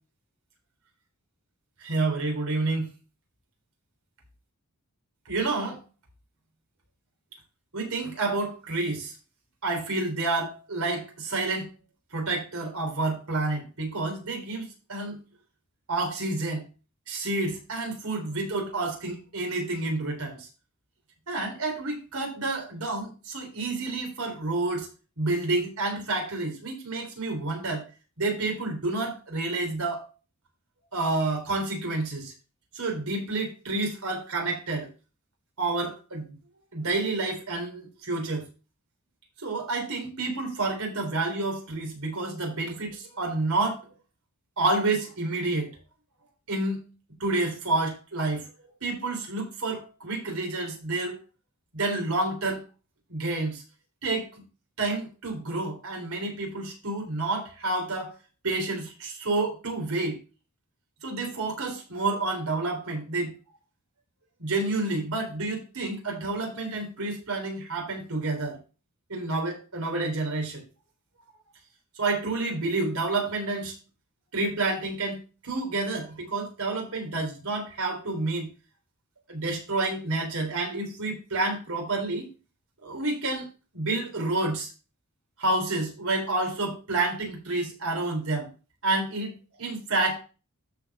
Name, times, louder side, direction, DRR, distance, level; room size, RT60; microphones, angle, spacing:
voice 1, 1.8-2.9 5.3-5.8 7.7-9.1 9.6-11.7 12.1-15.2 15.9-16.6 17.1-20.5 21.3-24.9 25.2-27.8 28.2-30.1 30.9-32.3 32.7-34.9 35.6-36.3 36.7-38.4 39.4-43.9 44.6-45.7 46.5-46.8 47.2-48.4 48.8-51.2 51.7-52.6 53.1-53.6 54.0-54.4 54.8-58.1 58.4-60.2 61.0-63.3 64.4-68.6 69.1-70.6 72.0-73.7 74.3-78.5 79.3-82.3 82.8-83.5 83.7-84.7 85.4-88.5 88.8-90.2, right 2 dB, 70° right, 1 dB, 3.7 m, -29 dB
12.5 x 4.8 x 4.2 m, 0.32 s
head